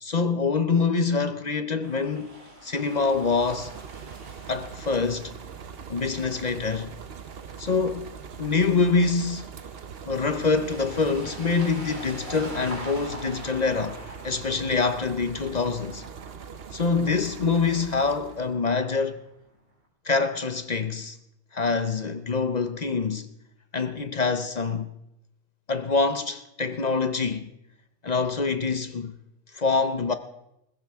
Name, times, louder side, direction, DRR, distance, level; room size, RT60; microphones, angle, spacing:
voice 1, 0.0-3.7 4.5-5.3 5.9-6.9 7.6-8.1 8.4-9.5 10.1-14.0 14.2-16.0 16.7-19.2 20.1-21.2 21.5-23.3 23.7-24.9 25.7-27.5 28.0-29.1 29.5-30.1, left 4 dB, 45° left, 0.6 m, -25 dB
sound 1, 1.8-19.4, right 1 dB, 75° right, 4.0 m, -45 dB
sound 2, 2.8-18.6, right 7 dB, 50° right, 0.9 m, -42 dB
21.0 x 15.5 x 3.5 m
omnidirectional pair, 1.4 m